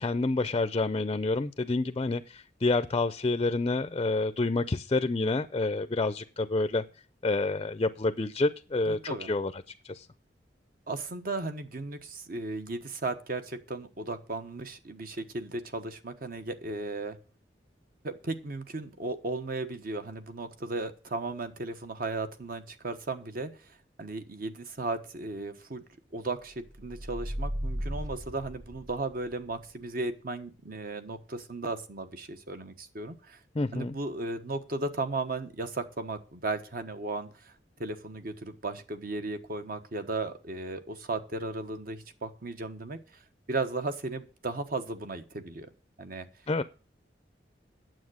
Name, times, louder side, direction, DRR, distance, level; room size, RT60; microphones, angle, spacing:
voice 1, 0.0-6.8 7.2-9.5 9.8-10.1 33.6-33.9 46.5-46.6, left 3 dB, 30° left, 13 dB, 0.5 m, -28 dB
voice 2, 8.8-9.3 10.9-17.2 18.0-23.5 24.0-25.8 26.1-33.4 33.7-37.5 37.8-43.0 43.5-45.7 46.0-46.3, right 2 dB, 55° right, 9 dB, 1.2 m, -35 dB
sound 1, 26.7-29.3, equal, 20° right, 0.6 m, -36 dB
9.5 x 7.7 x 6.3 m, 0.37 s
head